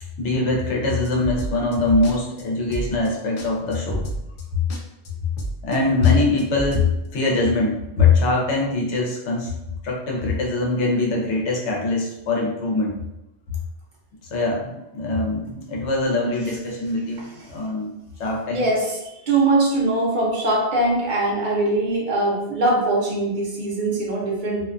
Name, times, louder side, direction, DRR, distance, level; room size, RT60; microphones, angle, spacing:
voice 1, 0.2-4.0 5.6-9.5 9.8-12.9 14.3-17.9 18.2-18.7, left 3 dB, 80° left, -1 dB, 1.0 m, -22 dB
sound 1, 1.0-2.1 2.4-2.5 2.7-3.1 3.4-3.5 3.7-4.4 4.7-4.8 5.1-5.2 5.4-5.8 6.0-6.9, right 1 dB, 60° left, 0.6 m, -30 dB
voice 2, 18.5-24.6, right 2 dB, 50° right, -3 dB, 0.7 m, -22 dB
2.5 x 2.2 x 2.4 m, 0.94 s
omnidirectional pair, 1.2 m